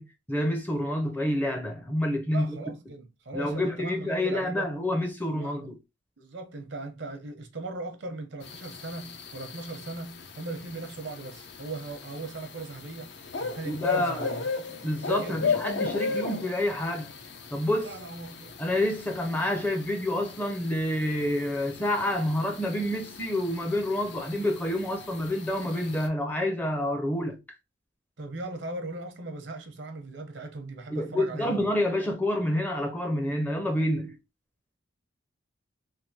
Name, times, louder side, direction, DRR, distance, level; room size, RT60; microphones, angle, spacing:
voice 1, 0.0-2.6 3.3-5.8 13.6-14.3 14.7-17.1 17.5-17.9 18.6-27.4 30.9-34.2, left 1 dB, 10° left, 0.5 m, -28 dB
voice 2, 2.3-4.7 5.3-5.6 6.2-13.1 13.4-14.5 15.2-15.5 16.1-16.3 17.8-18.5 28.2-31.7, right 2 dB, 70° right, 0.7 m, -39 dB
sound 1, 8.4-26.1, left 5 dB, 65° left, 0.6 m, -36 dB
3.3 x 2.5 x 2.6 m
head